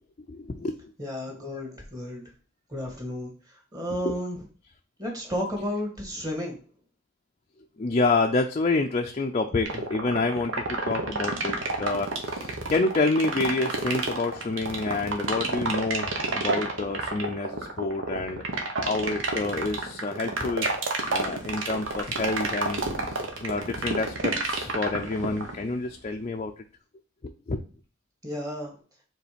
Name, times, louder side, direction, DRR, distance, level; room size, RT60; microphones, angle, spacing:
voice 1, 0.3-0.8 1.5-1.6 4.0-4.2 7.8-18.4 18.8-20.7 21.1-26.5 27.5-27.6, left 3 dB, 35° left, 3 dB, 0.5 m, -28 dB
voice 2, 1.0-2.3 2.7-3.3 3.7-4.4 5.0-6.6 17.5-17.6 22.8-23.2 25.3-25.6 28.2-28.7, equal, 20° right, 0 dB, 1.9 m, -33 dB
sound 1, 9.7-25.6, right 3 dB, 75° right, 1.2 m, -29 dB
sound 2, 21.0-26.8, equal, 35° right, 2.2 m, -49 dB
5.0 x 3.8 x 5.0 m, 0.39 s
head